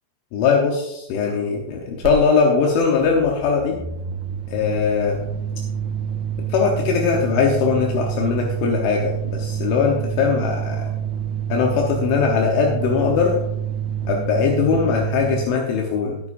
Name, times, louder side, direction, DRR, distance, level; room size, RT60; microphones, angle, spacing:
voice 1, 0.3-3.8 4.5-5.2 6.5-10.8 11.5-13.3 14.1-16.2, left 5 dB, 80° left, 0 dB, 3.5 m, -20 dB
sound 1, 2.0-2.2 2.4-15.5, right 8 dB, 70° right, 2.7 m, -27 dB
18.5 x 9.6 x 2.6 m, 0.87 s
omnidirectional pair, 5.5 m